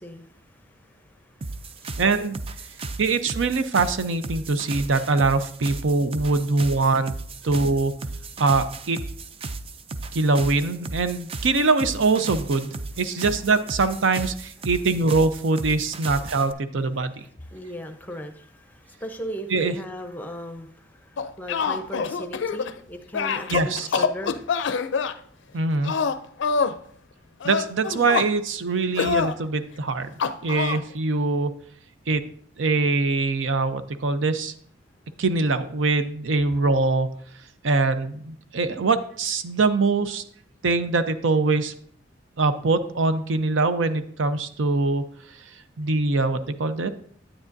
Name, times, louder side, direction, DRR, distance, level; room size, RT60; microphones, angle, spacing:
voice 1, 0.0-2.0 2.7-3.0 17.0-17.1 17.4-24.4 24.7-24.8, equal, 10° left, 6 dB, 0.7 m, -38 dB
sound 1, 1.4-16.5, right 3 dB, 30° right, 0.4 m, -35 dB
voice 2, 2.0-2.4 3.0-7.1 7.4-7.9 8.4-9.0 10.1-17.2 19.5-19.7 23.5-24.0 25.5-25.9 27.4-30.1 30.4-31.5 32.1-32.2 32.6-34.5 35.2-37.1 37.6-40.2 40.6-41.7 42.4-45.0 45.8-46.9, right 3 dB, 75° right, 11 dB, 0.6 m, -23 dB
sound 2, 21.2-22.8 23.1-25.1 25.8-26.8 27.4-28.3 29.0-29.4 30.2-30.8, left 5 dB, 65° left, 0.4 m, -25 dB
9.8 x 8.7 x 2.6 m, 0.62 s
head